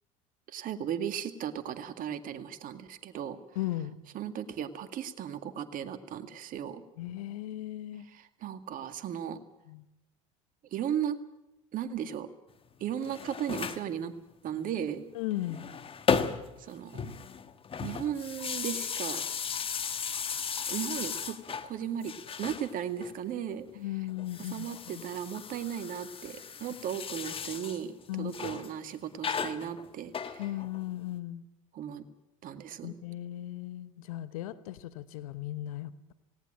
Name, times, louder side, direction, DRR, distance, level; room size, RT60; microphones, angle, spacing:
voice 1, 0.5-3.4 4.1-6.8 8.0-9.4 10.7-11.2 11.7-12.3 12.8-14.1 14.4-15.1 16.6-17.1 17.8-19.2 20.7-22.1 22.4-23.7 24.4-30.4 31.7-32.0 32.4-33.0, right 9 dB, 50° right, 10 dB, 1.9 m, -36 dB
voice 2, 3.5-4.0 7.0-8.1 9.7-9.9 15.1-15.7 23.7-25.0 28.1-28.3 30.4-31.4 32.8-36.1, left 14 dB, 80° left, 14 dB, 1.1 m, -37 dB
sound 1, 12.9-13.9 15.3-16.6 16.9-21.7 22.0-23.1 24.2-27.8 28.3-28.7 29.2-30.8, left 6 dB, 30° left, 1.5 m, -35 dB
18.0 x 18.0 x 8.8 m, 0.92 s
hypercardioid pair, 80°, 18 cm